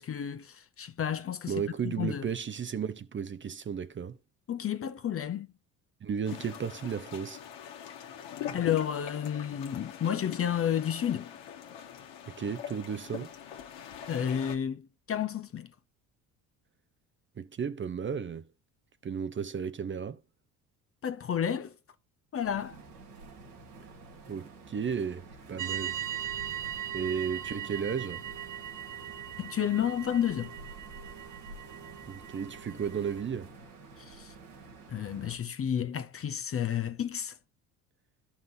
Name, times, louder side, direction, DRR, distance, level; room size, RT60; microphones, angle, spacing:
voice 1, 0.0-2.3 4.5-5.5 8.0-8.1 8.5-11.3 14.1-15.7 21.0-21.7 22.3-22.8 29.4-30.6 34.0-34.3 34.9-37.4, left 9 dB, 30° left, 0.6 m, -31 dB
voice 2, 1.5-4.2 6.0-7.4 12.3-13.3 17.4-18.4 19.0-20.2 24.3-26.0 26.3-26.4 26.9-28.2 32.1-33.5, right 7 dB, 25° right, 0.7 m, -34 dB
sound 1, 6.2-14.6, left 9 dB, 65° left, 1.6 m, -42 dB
sound 2, 22.4-35.4, right 3 dB, 85° right, 2.6 m, -50 dB
sound 3, 25.6-33.2, right 10 dB, 40° right, 1.0 m, -39 dB
14.0 x 5.7 x 2.7 m
hypercardioid pair, 60°, 45 cm